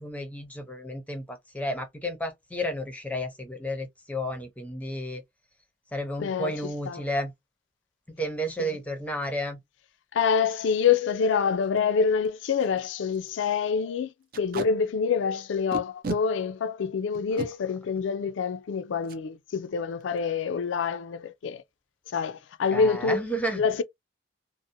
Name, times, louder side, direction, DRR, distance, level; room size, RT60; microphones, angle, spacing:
voice 1, 0.0-5.2 5.9-7.3 8.1-9.6 22.7-23.6, equal, 10° left, 0.6 m, -32 dB
voice 2, 6.2-6.5 6.9-7.0 8.6-8.7 10.1-21.6 22.1-23.2 23.6-23.8, left 6 dB, 70° left, 0.4 m, -26 dB
Packing tape duct tape, 10.7-10.9 11.3-11.4 11.6-11.8 12.2-12.3 12.6-12.8 13.1-13.3 14.3-14.7 15.7-16.2 17.1-17.5 19.0-19.2 19.6-19.7 20.0-20.4, right 3 dB, 50° right, 0.5 m, -34 dB
2.6 x 2.0 x 2.6 m
head